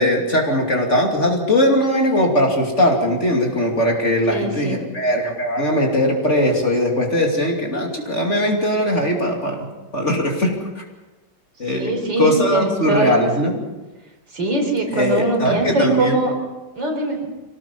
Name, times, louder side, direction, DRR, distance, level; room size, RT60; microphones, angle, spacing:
voice 1, 0.0-9.7 9.9-10.8 11.6-13.5 14.9-16.2, left 1 dB, 35° left, 1 dB, 3.0 m, -20 dB
voice 2, 4.2-4.8 11.7-13.5 14.3-16.3 16.8-17.3, right 2 dB, 65° right, 2 dB, 4.8 m, -22 dB
25.5 x 18.5 x 5.6 m, 1.1 s
omnidirectional pair, 2.1 m